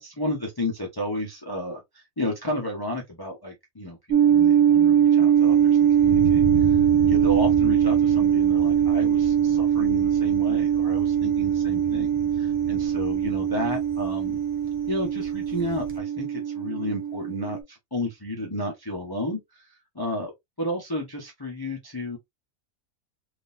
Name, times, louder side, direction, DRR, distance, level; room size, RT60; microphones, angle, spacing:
voice 1, 0.0-6.4 6.7-12.1 12.4-14.4 14.9-19.7 19.9-20.3 20.6-22.2, left 1 dB, 20° left, 0.9 m, -32 dB
sound 1, 4.1-17.6, right 9 dB, 70° right, 1.1 m, -21 dB
Thunder, 5.4-16.0, right 3 dB, 40° right, 0.8 m, -36 dB
3.7 x 2.9 x 2.6 m
omnidirectional pair, 1.5 m